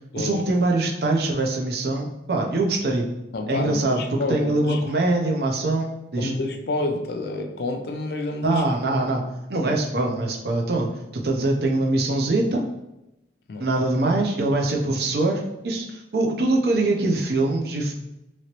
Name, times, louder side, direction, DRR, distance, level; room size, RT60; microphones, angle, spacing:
voice 1, 0.1-3.1 3.5-4.0 4.3-6.3 8.4-9.2 9.5-12.7 13.6-17.9, right 2 dB, 60° right, 0 dB, 0.5 m, -23 dB
voice 2, 3.3-5.1 6.2-8.6 13.5-13.7, left 2 dB, 60° left, 4 dB, 0.4 m, -29 dB
3.0 x 2.9 x 2.9 m, 0.92 s
head